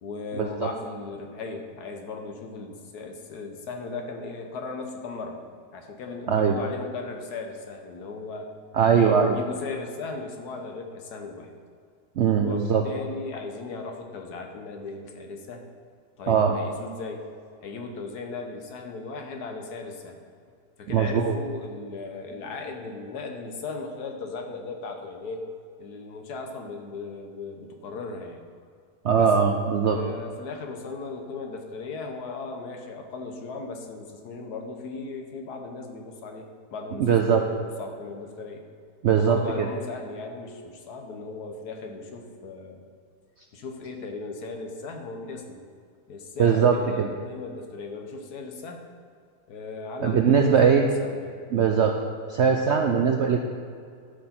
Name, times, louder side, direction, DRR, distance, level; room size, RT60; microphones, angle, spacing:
voice 1, 0.0-5.4 5.7-8.5 8.9-11.5 12.4-15.7 16.2-17.3 17.6-20.2 20.8-25.4 25.8-28.4 29.1-29.3 29.8-36.4 36.7-38.6 39.1-42.8 43.5-45.6 46.1-48.8 49.5-51.3 52.4-52.5, left 3 dB, 70° left, 4 dB, 1.5 m, -37 dB
voice 2, 8.7-9.4 12.2-12.8 16.3-16.5 20.9-21.4 29.0-30.0 37.0-37.4 39.0-39.7 46.4-47.1 50.0-50.9 51.5-51.9 52.3-53.4, right 6 dB, 65° right, 3 dB, 0.6 m, -20 dB
12.5 x 6.4 x 4.3 m, 2.2 s
omnidirectional pair, 1.8 m